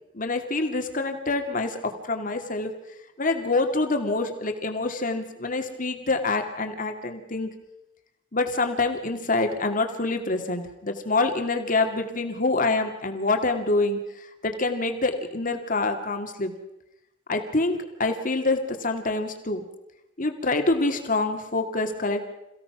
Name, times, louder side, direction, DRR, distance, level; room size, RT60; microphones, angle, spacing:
voice 1, 0.1-1.8 2.0-2.7 3.2-7.5 8.3-14.0 14.4-16.5 17.3-19.7 20.2-22.3, left 3 dB, 45° left, 5 dB, 2.4 m, -26 dB
28.0 x 16.0 x 6.0 m, 0.92 s
head